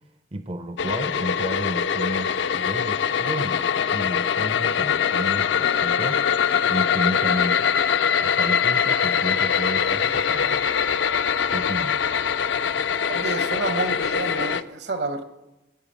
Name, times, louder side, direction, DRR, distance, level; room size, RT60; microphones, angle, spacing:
voice 1, 0.3-6.2 6.7-7.7 8.2-10.7 11.5-12.1, right 1 dB, 30° right, 11 dB, 0.5 m, -32 dB
sound 1, 0.8-14.6, left 7 dB, 80° left, 0.5 m, -23 dB
voice 2, 13.1-15.2, right 3 dB, 70° right, 10 dB, 1.2 m, -29 dB
16.0 x 8.1 x 8.7 m, 1.0 s
head